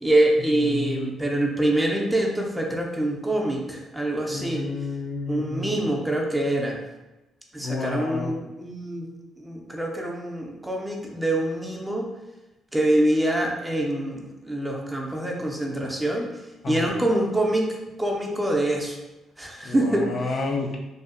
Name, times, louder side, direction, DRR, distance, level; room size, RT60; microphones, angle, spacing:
voice 1, 0.0-4.7 5.3-6.8 7.5-9.1 9.4-12.1 12.7-16.3 16.7-19.0 19.4-20.1, right 1 dB, 10° right, 0 dB, 0.5 m, -25 dB
voice 2, 0.6-1.2 4.3-5.8 7.6-8.3 16.6-16.9 19.6-20.8, left 3 dB, 55° left, 1 dB, 0.4 m, -30 dB
2.6 x 2.4 x 2.5 m, 0.99 s
cardioid pair, 90°, 0 cm